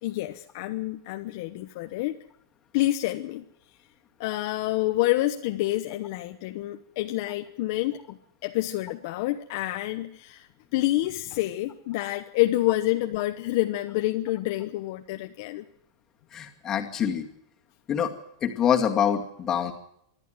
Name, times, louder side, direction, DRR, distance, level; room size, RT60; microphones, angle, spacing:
voice 1, 0.0-2.2 2.7-3.4 4.2-15.6, left 16 dB, 45° left, 6 dB, 1.0 m, -28 dB
voice 2, 16.3-17.2 17.9-18.1 18.4-19.7, left 8 dB, 20° left, 3 dB, 2.3 m, -25 dB
24.5 x 12.0 x 9.1 m, 0.72 s
supercardioid pair, 165°, 2 cm